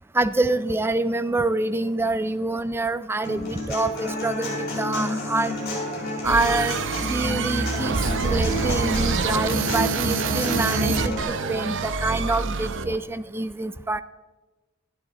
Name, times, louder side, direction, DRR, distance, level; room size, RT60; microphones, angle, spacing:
voice 1, 0.1-5.5 6.2-6.8 7.1-8.0 8.2-14.0, right 2 dB, 10° right, 14 dB, 0.3 m, -26 dB
Human voice / Acoustic guitar, 3.2-11.2, left 1 dB, 50° left, 4.5 m, -30 dB
sound 1, 6.2-13.0, right 4 dB, 60° right, 0.7 m, -26 dB
12.5 x 11.0 x 4.1 m, 1.2 s
head